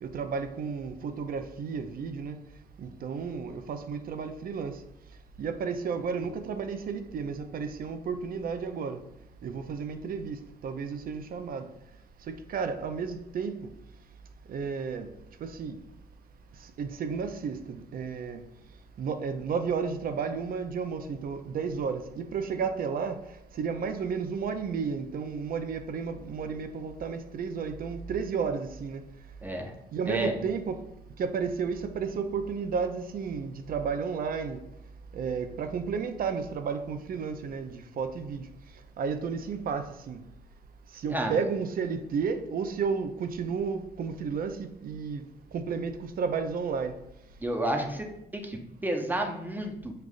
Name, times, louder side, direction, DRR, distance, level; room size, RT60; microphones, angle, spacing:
voice 1, 0.0-2.4 2.8-4.8 5.4-9.0 9.4-11.7 12.5-13.7 14.5-15.1 15.4-15.8 16.6-18.4 19.0-29.0 29.9-30.8 31.2-34.6 35.1-38.5 39.0-40.2 40.9-45.2 45.5-47.0, right 5 dB, 55° right, 0.5 m, -32 dB
voice 2, 29.4-29.8 30.1-30.4 41.1-41.4 47.4-49.9, right 1 dB, 10° right, 0.8 m, -31 dB
6.5 x 2.5 x 2.4 m
cardioid pair, 80°, 18 cm